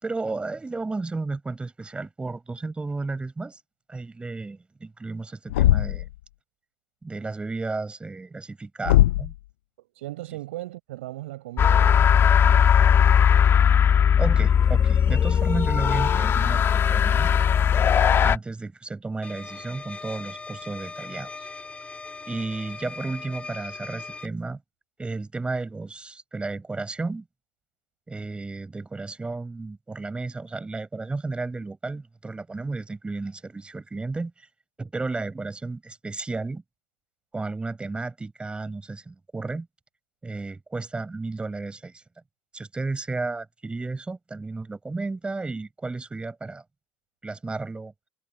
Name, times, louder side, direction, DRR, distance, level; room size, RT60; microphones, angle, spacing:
voice 1, 0.0-3.6 3.9-6.1 7.0-9.3 14.2-16.6 16.9-17.3 18.2-21.5 22.3-24.6 25.0-27.2 28.1-34.5 34.8-36.6 37.3-39.7 40.2-42.0 42.5-46.6 47.2-47.9, right 3 dB, 15° right, 5.8 m, -33 dB
Thump thud, 5.5-6.1 8.8-9.4, left 15 dB, 75° left, 0.6 m, -19 dB
voice 2, 9.8-13.0, right 17 dB, 75° right, 7.5 m, -38 dB
sound 1, 11.6-18.4, left 8 dB, 35° left, 1.8 m, -18 dB
sound 2, 19.2-24.3, left 4 dB, 20° left, 3.8 m, -39 dB
hypercardioid pair, 80°, 7 cm